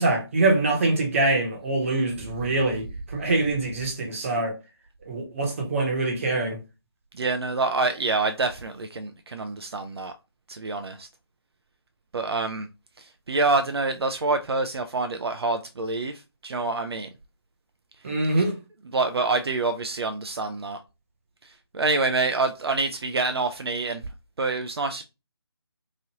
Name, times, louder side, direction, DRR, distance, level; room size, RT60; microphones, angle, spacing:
voice 1, 0.0-4.5 5.0-6.6 18.0-18.6, right 2 dB, 30° right, 0.9 m, -24 dB
voice 2, 7.1-10.1 10.5-11.1 12.1-12.7 13.0-17.1 18.4-18.5 18.8-20.8 21.4-24.0 24.4-25.0, right 3 dB, 70° right, 0.4 m, -27 dB
3.0 x 2.5 x 2.8 m
figure-of-eight pair, 160°, 14 cm